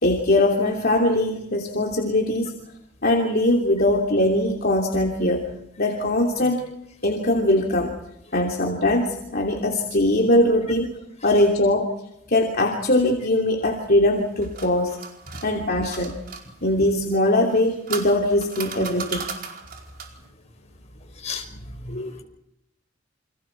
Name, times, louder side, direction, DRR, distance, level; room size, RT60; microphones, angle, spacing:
voice 1, 0.0-2.5 3.0-5.5 5.8-6.6 7.0-7.9 8.3-10.9 11.2-11.9 12.3-15.0 15.4-16.1 16.6-19.3 21.9-22.1, left 1 dB, 55° left, 0 dB, 3.1 m, -21 dB
sound 1, 14.1-16.4 17.4-20.2, right 5 dB, 50° right, 4.8 m, -36 dB
voice 2, 21.8-22.2, left 5 dB, 35° left, 4 dB, 5.6 m, -33 dB
29.5 x 27.0 x 4.7 m, 0.81 s
head